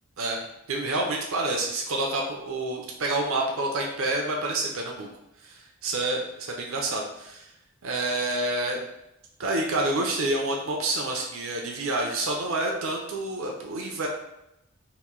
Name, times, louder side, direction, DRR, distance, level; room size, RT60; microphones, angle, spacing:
voice 1, 0.2-5.1 5.4-7.5 7.8-8.8 9.4-14.1, right 2 dB, 65° right, 0 dB, 0.5 m, -28 dB
3.0 x 2.6 x 3.6 m, 0.85 s
head